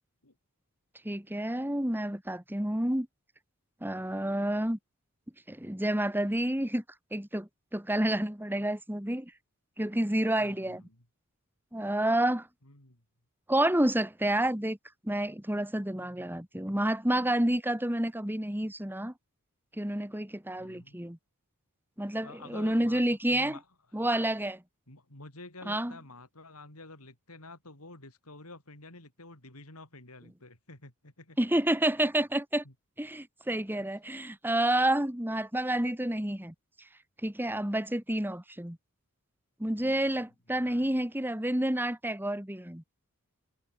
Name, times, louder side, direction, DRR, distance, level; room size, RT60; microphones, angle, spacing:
voice 1, 1.1-3.1 3.8-4.8 5.5-6.8 7.1-9.3 9.8-10.8 11.7-12.5 13.5-14.8 15.0-19.1 19.8-21.2 22.0-23.6 23.9-24.6 25.7-25.9 31.4-32.6 33.0-36.5 37.2-38.8 39.6-42.8, right 1 dB, 10° right, 1.9 m, -29 dB
voice 2, 10.4-11.0 12.6-13.0 20.6-21.0 22.2-23.0 23.3-23.7 23.9-24.1 24.9-31.4 32.6-32.7 33.8-33.9 39.8-41.0, left 2 dB, 80° left, 6.1 m, -50 dB
head